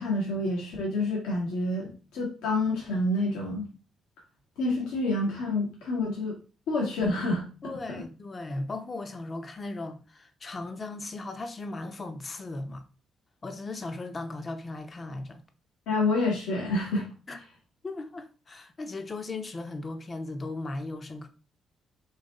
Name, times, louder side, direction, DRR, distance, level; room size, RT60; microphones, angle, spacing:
voice 1, 0.0-3.7 4.6-6.4 6.7-7.4 15.9-17.1, left 2 dB, 85° left, 1.3 m, -28 dB
voice 2, 7.6-12.8 13.4-15.4 17.3-17.4 17.8-21.3, left 2 dB, 40° left, 0.8 m, -37 dB
4.0 x 3.0 x 4.1 m
supercardioid pair, 60°, 0 cm